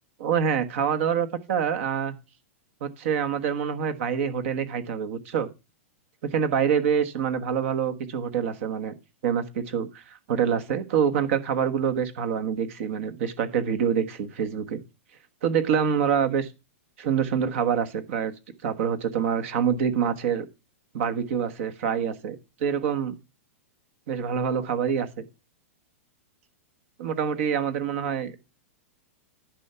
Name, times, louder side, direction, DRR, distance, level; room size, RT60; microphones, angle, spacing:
voice 1, 0.2-2.2 2.8-5.5 6.2-8.9 9.2-14.8 15.4-16.5 17.0-18.3 18.6-20.4 20.9-23.1 24.1-25.1 27.0-28.3, right 7 dB, 60° right, 9 dB, 1.3 m, -26 dB
10.5 x 4.6 x 6.8 m, 0.27 s
hypercardioid pair, 115°, 8 cm